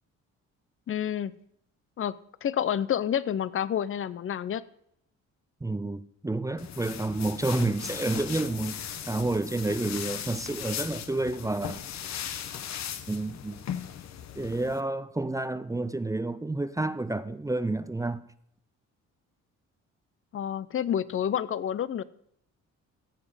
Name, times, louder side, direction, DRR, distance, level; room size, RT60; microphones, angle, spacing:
voice 1, 0.9-1.3 2.0-2.2 2.4-4.6 20.3-22.0, left 9 dB, 45° left, 0.7 m, -29 dB
voice 2, 5.6-11.8 13.1-13.6 14.4-18.2, right 2 dB, 10° right, 0.5 m, -30 dB
sound 1, 6.6-14.8, left 9 dB, 65° left, 1.0 m, -38 dB
16.0 x 7.4 x 5.0 m
cardioid pair, 90°, 30 cm